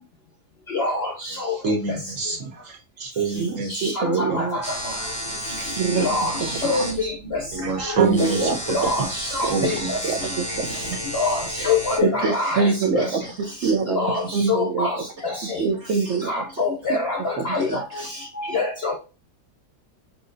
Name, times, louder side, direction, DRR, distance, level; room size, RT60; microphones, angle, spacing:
voice 1, 0.7-1.1 1.4-1.5 3.7-4.6 5.9-7.1 8.7-10.0 11.1-13.1 14.0-14.2 14.5-15.0 15.2-15.3 16.3-17.8 18.4-19.0, left 3 dB, 55° left, 0.7 m, -25 dB
voice 2, 1.5-4.7 7.5-8.8 9.5-9.9 10.2-10.4, right 4 dB, 55° right, 1.3 m, -27 dB
voice 3, 3.4-4.6 5.8-6.9 7.6-7.7 8.0-8.6 8.8-8.9 9.4-9.7 10.0-11.0 11.6-11.7 12.0-14.9 15.4-16.4 16.9-17.0 17.4-18.1, right 5 dB, 70° right, 0.6 m, -25 dB
sound 1, 4.6-12.0, equal, 5° left, 0.6 m, -32 dB
5.8 x 2.7 x 2.6 m
omnidirectional pair, 1.8 m